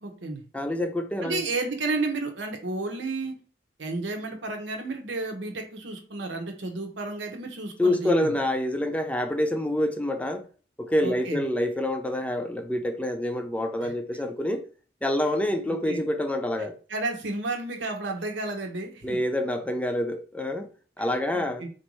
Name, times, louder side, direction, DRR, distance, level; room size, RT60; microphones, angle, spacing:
voice 1, 0.0-0.4 1.2-3.4 3.8-8.3 11.0-11.4 13.8-13.9 15.9-16.0 16.9-19.2 21.0-21.7, right 3 dB, 80° right, 0.8 m, -32 dB
voice 2, 0.5-1.4 7.8-10.4 10.8-14.6 15.0-16.8 19.0-20.7 21.0-21.6, left 1 dB, 10° left, 0.4 m, -27 dB
4.3 x 2.6 x 3.0 m
head